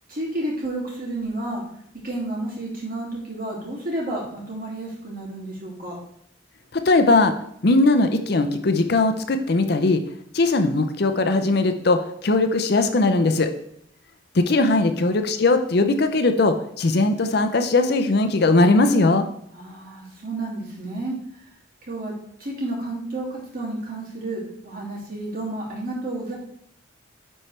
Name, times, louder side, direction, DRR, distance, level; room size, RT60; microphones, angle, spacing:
voice 1, 0.1-1.6 2.0-6.0 19.5-21.4 21.9-22.1 22.4-26.4, right 2 dB, 50° right, -4 dB, 2.5 m, -31 dB
voice 2, 6.7-7.3 7.6-10.0 10.3-13.5 14.3-19.2, left 2 dB, 55° left, 8 dB, 0.6 m, -19 dB
10.0 x 4.3 x 3.3 m, 0.70 s
head